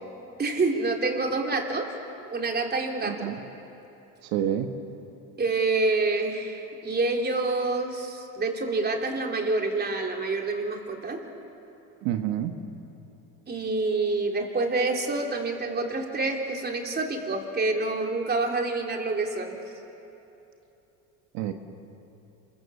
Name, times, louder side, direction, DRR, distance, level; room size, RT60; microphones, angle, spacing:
voice 1, 0.4-1.9 2.3-3.3 5.4-11.2 13.5-19.6, right 3 dB, 30° right, 2 dB, 3.5 m, -27 dB
voice 2, 3.0-3.4 4.2-4.7 12.0-12.5 21.3-21.5, right 11 dB, 80° right, 6 dB, 1.5 m, -28 dB
26.5 x 23.5 x 7.3 m, 2.9 s
supercardioid pair, 100°, 35 cm